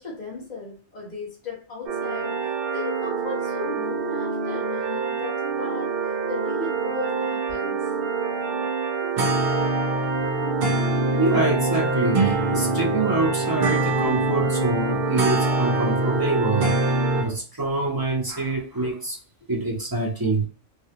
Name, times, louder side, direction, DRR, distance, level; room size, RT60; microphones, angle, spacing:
voice 1, 0.0-2.3 2.7-5.9 6.3-7.9 10.2-10.4 19.4-19.5, left 4 dB, 35° left, -6 dB, 1.4 m, -36 dB
sound 1, 1.9-17.2, right 3 dB, 55° right, 0.8 m, -24 dB
voice 2, 11.2-16.7 17.2-19.2 19.5-20.5, right 2 dB, 25° right, -3 dB, 0.5 m, -25 dB
3.2 x 2.3 x 2.8 m, 0.40 s
omnidirectional pair, 1.4 m